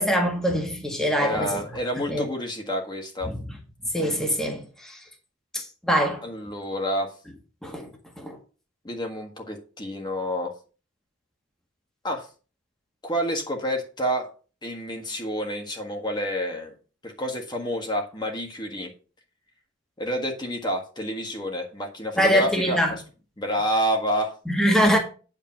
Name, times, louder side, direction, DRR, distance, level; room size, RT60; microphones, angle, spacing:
voice 1, 0.0-1.6 2.1-2.2 3.2-3.4 3.9-5.0 5.5-6.2 7.6-7.9 8.2-8.4 22.2-22.9 24.5-25.0, equal, 5° left, 1.7 m, -23 dB
voice 2, 1.2-3.3 6.2-7.1 8.8-10.5 12.0-12.3 13.0-14.3 14.6-16.7 17.0-18.9 20.0-23.0 23.4-24.3, equal, 25° left, 1.6 m, -29 dB
9.3 x 5.2 x 5.6 m
head